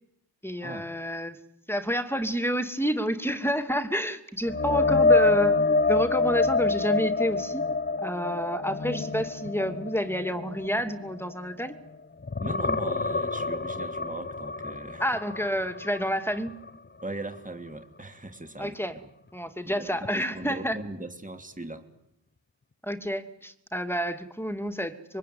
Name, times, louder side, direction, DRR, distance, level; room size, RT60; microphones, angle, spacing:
voice 1, 0.4-1.4 1.7-5.6 5.8-7.6 8.0-11.8 15.0-16.6 18.6-19.0 19.3-20.8 22.8-25.2, equal, 5° left, 8 dB, 2.7 m, -29 dB
sound 1, 4.5-11.9 12.2-16.1 16.5-16.7 20.0-20.1, left 3 dB, 25° left, 1.0 m, -26 dB
voice 2, 12.4-15.0 17.0-19.1 19.6-21.9, right 2 dB, 20° right, 6 dB, 3.0 m, -39 dB
25.0 x 23.5 x 9.7 m, 0.81 s
cardioid pair, 50°, 44 cm